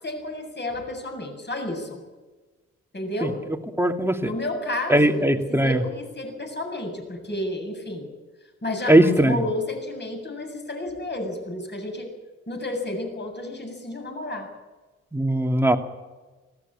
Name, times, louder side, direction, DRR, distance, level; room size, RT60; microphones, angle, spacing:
voice 1, 0.0-2.0 2.9-3.4 4.2-8.1 8.6-12.1 12.5-14.5, left 1 dB, 35° left, 3 dB, 7.7 m, -31 dB
voice 2, 3.8-4.3 4.9-5.8 8.9-9.4 15.1-15.8, right 1 dB, 5° right, 5 dB, 2.5 m, -19 dB
19.0 x 16.5 x 8.9 m, 1.2 s
supercardioid pair, 55°, 31 cm